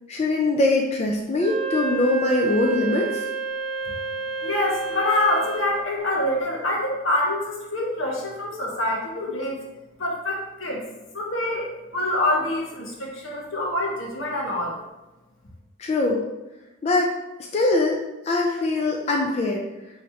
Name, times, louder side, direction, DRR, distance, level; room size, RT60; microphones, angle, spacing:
voice 1, 0.1-3.2 15.8-16.2 16.8-17.1 17.5-18.0 18.3-19.6, left 2 dB, 30° left, 0 dB, 0.4 m, -22 dB
Wind instrument woodwind instrument, 1.3-5.8, right 4 dB, 35° right, 0.8 m, -30 dB
voice 2, 4.4-9.6 10.0-10.8 11.1-14.8, left 1 dB, 85° left, -2 dB, 1.1 m, -26 dB
5.7 x 3.1 x 2.7 m, 1.0 s
head